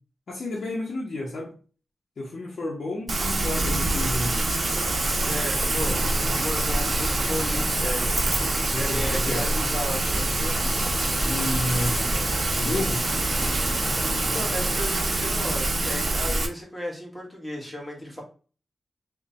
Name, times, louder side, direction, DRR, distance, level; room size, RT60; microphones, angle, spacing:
voice 1, 0.3-1.5 2.2-4.5 8.6-9.5 11.2-12.2 12.6-13.0, left 1 dB, 65° left, 0.7 m, -31 dB
Rain, 3.1-16.5, right 2 dB, 40° right, 0.7 m, -25 dB
sound 1, 4.6-14.8, left 2 dB, 35° left, 0.3 m, -37 dB
voice 2, 5.0-10.8 14.3-18.2, left 1 dB, 10° left, 1.3 m, -35 dB
3.1 x 2.2 x 3.9 m
wide cardioid pair, 120°, 0 cm